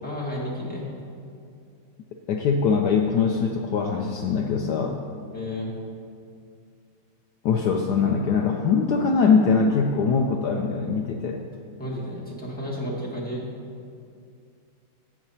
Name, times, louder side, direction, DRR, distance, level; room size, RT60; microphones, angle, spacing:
voice 1, 0.0-0.9 5.3-5.7 11.8-13.5, left 1 dB, 5° left, -6 dB, 1.1 m, -32 dB
voice 2, 2.3-5.0 7.4-11.4, left 5 dB, 85° left, 2 dB, 0.8 m, -22 dB
7.9 x 5.9 x 5.6 m, 2.3 s
omnidirectional pair, 2.3 m